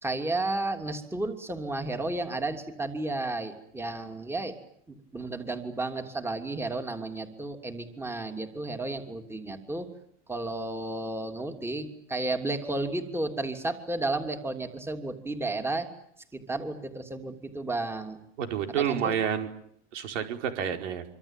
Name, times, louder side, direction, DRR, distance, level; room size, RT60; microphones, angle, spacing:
voice 1, 0.0-4.5 4.9-9.9 10.3-15.9 16.5-18.2 18.8-19.2, right 2 dB, 5° right, 6 dB, 3.0 m, -32 dB
voice 2, 18.4-19.5 19.9-21.0, right 8 dB, 80° right, 6 dB, 4.8 m, -29 dB
26.0 x 25.0 x 9.1 m, 0.69 s
supercardioid pair, 130°, 36 cm